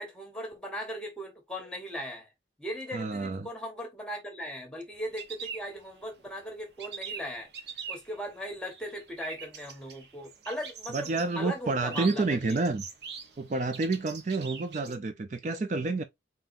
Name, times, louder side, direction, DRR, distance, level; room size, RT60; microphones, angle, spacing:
voice 1, 0.0-2.3 2.6-7.5 7.9-12.6 14.9-15.0, equal, 5° left, 1.3 m, -38 dB
voice 2, 2.9-3.5 10.9-12.8 13.4-16.0, right 3 dB, 40° right, 0.4 m, -29 dB
sound 1, 4.9-6.3 6.6-15.0, right 6 dB, 70° right, 0.9 m, -43 dB
3.9 x 3.9 x 2.5 m
head